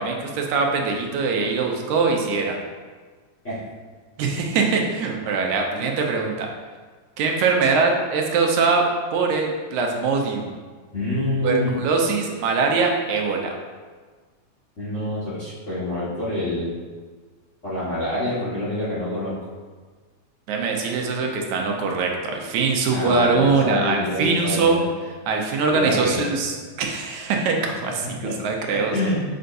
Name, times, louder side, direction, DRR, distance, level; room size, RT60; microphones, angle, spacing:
voice 1, 0.0-2.6 4.2-6.5 7.2-8.9 9.1-10.5 11.4-13.5 20.5-24.8 25.3-29.1, right 4 dB, 80° right, 2 dB, 2.1 m, -22 dB
voice 2, 10.9-11.7 14.8-16.7 17.6-19.3 22.9-24.9 25.7-26.3 28.2-28.3 28.7-29.2, left 1 dB, 35° left, -10 dB, 1.3 m, -26 dB
6.6 x 5.5 x 2.6 m, 1.5 s
omnidirectional pair, 3.3 m